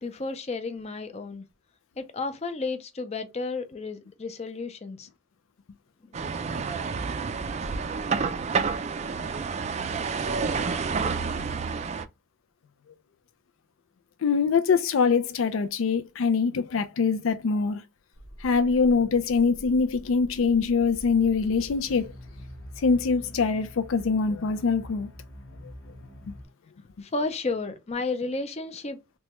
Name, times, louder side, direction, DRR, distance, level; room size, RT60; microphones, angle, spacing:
voice 1, 0.0-1.4 2.0-5.1 6.1-6.3 27.0-29.0, left 3 dB, 35° left, 0.5 m, -32 dB
sound 1, 6.1-12.1, right 5 dB, 35° right, 0.3 m, -29 dB
voice 2, 14.2-17.8 18.4-22.1 22.8-25.1 26.3-26.4, left 5 dB, 90° left, 0.4 m, -24 dB
sound 2, 18.1-26.4, equal, 65° left, 1.1 m, -45 dB
3.0 x 2.2 x 2.9 m
head